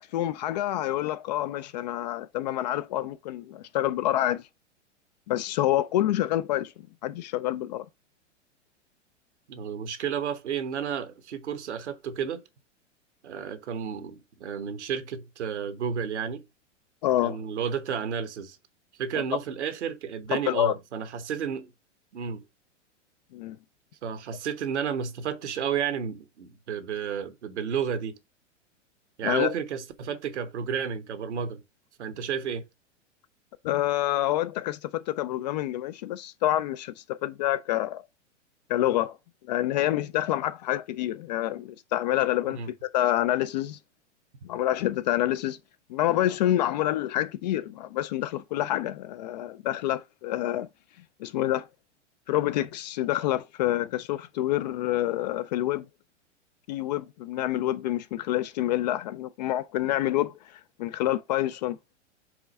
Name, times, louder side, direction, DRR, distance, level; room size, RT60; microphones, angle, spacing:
voice 1, 0.0-4.4 5.3-6.7 7.0-7.9 17.0-17.4 19.1-19.2 20.3-20.7 23.3-23.6 29.2-29.5 33.6-38.0 38.7-39.2 39.5-43.8 44.4-45.6 45.9-50.7 51.2-51.7 52.3-55.8 56.7-61.8, left 13 dB, 35° left, 0.4 m, -27 dB
voice 2, 9.5-12.4 13.2-16.4 17.2-18.6 19.0-21.7 22.1-22.4 24.0-28.1 29.2-31.6 32.0-32.6 42.5-42.7, right 7 dB, 65° right, 1.2 m, -32 dB
4.8 x 3.9 x 5.2 m
figure-of-eight pair, 105°, 37 cm